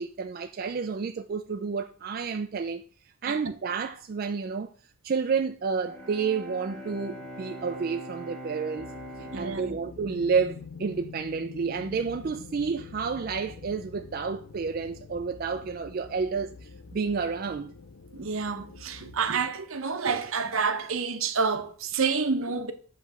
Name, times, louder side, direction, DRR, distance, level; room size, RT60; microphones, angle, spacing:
voice 1, 0.0-2.8 3.2-4.7 5.0-8.9 9.3-17.7, right 5 dB, 40° right, 0.3 m, -30 dB
Bowed string instrument, 5.8-11.8, equal, 5° left, 1.1 m, -43 dB
sound 1, 8.8-19.3, left 4 dB, 75° left, 0.6 m, -46 dB
voice 2, 9.3-9.8 18.1-22.7, right 5 dB, 70° right, 0.8 m, -28 dB
8.0 x 3.2 x 6.0 m
head